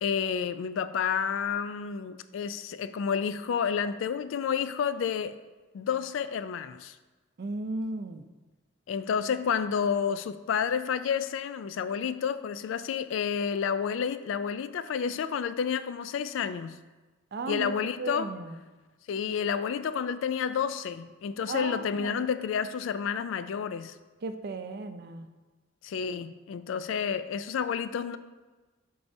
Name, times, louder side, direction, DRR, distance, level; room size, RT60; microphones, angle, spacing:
voice 1, 0.0-5.4 5.7-7.0 8.9-16.8 17.5-18.3 19.1-23.9 25.8-28.2, left 7 dB, 70° left, 0.3 m, -30 dB
voice 2, 7.4-8.3 17.3-17.7 18.0-18.6 21.5-22.2 24.2-25.3, right 2 dB, 55° right, 0.4 m, -35 dB
8.3 x 4.7 x 2.7 m
head